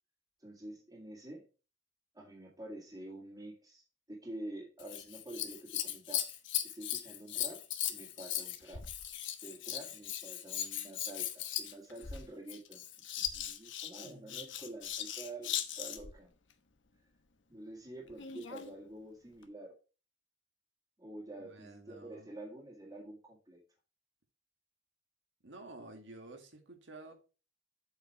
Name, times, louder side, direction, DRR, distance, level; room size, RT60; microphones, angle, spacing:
voice 1, 0.4-1.4 2.1-6.3 6.6-7.6 7.9-8.9 9.4-12.8 13.2-16.3 17.5-19.7 21.0-23.6, right 1 dB, 20° right, 2.1 m, -48 dB
Scissors, 4.8-16.2 18.1-18.7 19.4-19.5, left 11 dB, 80° left, 1.1 m, -38 dB
voice 2, 14.0-14.6 21.3-22.3 25.4-27.1, right 2 dB, 75° right, 1.9 m, -52 dB
8.0 x 4.9 x 4.4 m
head